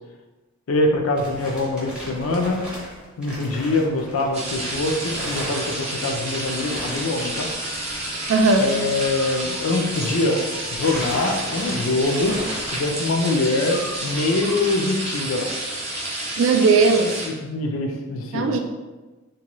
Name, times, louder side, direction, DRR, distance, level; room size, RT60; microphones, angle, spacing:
voice 1, 0.7-2.6 3.2-7.5 8.6-10.4 10.7-12.4 12.7-15.5 17.4-18.6, left 2 dB, 70° left, 3 dB, 0.4 m, -24 dB
sound 1, 0.8-10.4 10.7-14.4, equal, 5° right, 0.6 m, -37 dB
sound 2, 4.3-17.3, right 1 dB, 30° right, 0.8 m, -30 dB
voice 2, 8.3-8.7 16.4-17.1 18.3-18.6, right 4 dB, 65° right, 5 dB, 0.3 m, -17 dB
2.7 x 2.2 x 2.9 m, 1.2 s
head